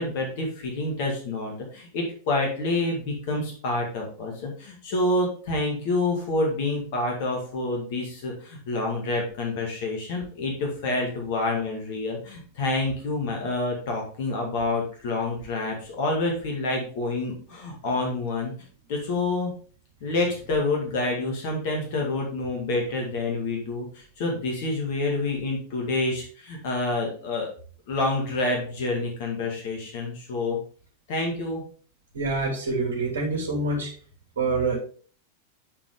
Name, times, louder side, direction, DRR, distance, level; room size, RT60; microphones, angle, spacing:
voice 1, 0.0-18.5 18.9-19.5 20.0-27.5 27.9-30.6 31.1-31.6, left 2 dB, 50° left, 0 dB, 2.1 m, -28 dB
voice 2, 32.1-33.9 34.4-34.8, right 3 dB, 65° right, -2 dB, 2.6 m, -26 dB
9.7 x 4.5 x 3.6 m, 0.43 s
figure-of-eight pair, 90°, 0 cm